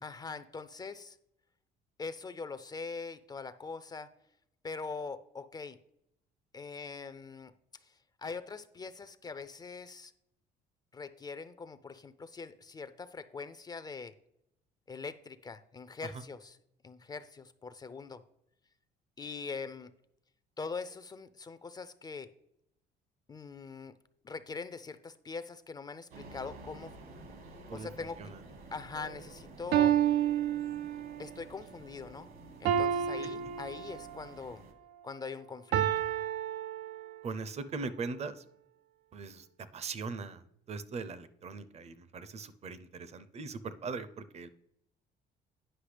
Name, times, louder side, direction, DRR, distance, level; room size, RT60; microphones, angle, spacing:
voice 1, 0.0-1.2 2.0-4.1 4.6-5.8 6.5-7.5 7.8-7.9 8.2-10.1 10.9-14.1 14.9-16.6 16.8-18.2 19.2-19.9 20.6-22.3 23.3-23.9 24.2-26.9 27.7-28.2 28.7-30.0 31.2-32.3 32.6-34.6 35.0-36.0, left 4 dB, 25° left, 12 dB, 0.4 m, -42 dB
sound 1, 26.1-34.7, right 2 dB, 60° right, 1.4 m, -51 dB
sound 2, 29.0-29.1 29.7-31.3 32.6-34.3 35.7-37.3, right 10 dB, 85° right, 0.4 m, -30 dB
voice 2, 37.2-38.4 39.1-40.4 40.7-44.5, right 4 dB, 40° right, 14 dB, 0.6 m, -40 dB
9.9 x 5.7 x 3.3 m, 0.78 s
cardioid pair, 110°, 17 cm